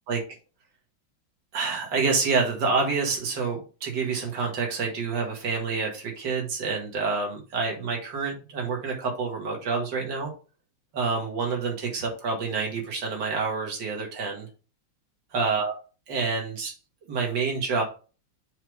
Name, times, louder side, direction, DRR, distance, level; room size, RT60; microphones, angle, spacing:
voice 1, 1.5-10.3 10.9-14.5 15.3-15.7 16.1-16.7 17.1-17.8, right 4 dB, 60° right, 0 dB, 2.6 m, -28 dB
7.1 x 3.6 x 5.3 m, 0.34 s
omnidirectional pair, 2.3 m